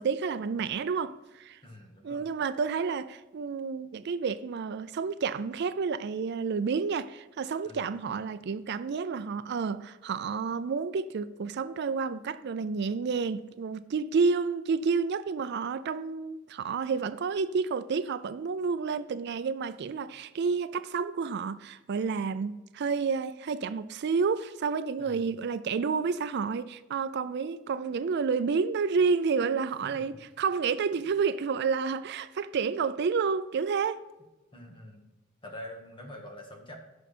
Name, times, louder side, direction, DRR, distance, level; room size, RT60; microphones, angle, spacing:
voice 1, 0.0-1.6 2.0-34.0, right 5 dB, 55° right, 0.4 m, -30 dB
voice 2, 1.6-2.3 7.6-8.2 25.0-25.4 29.9-30.2 30.9-31.1 34.5-35.1 35.4-36.8, left 1 dB, 25° left, 1.8 m, -46 dB
15.5 x 6.2 x 4.3 m
head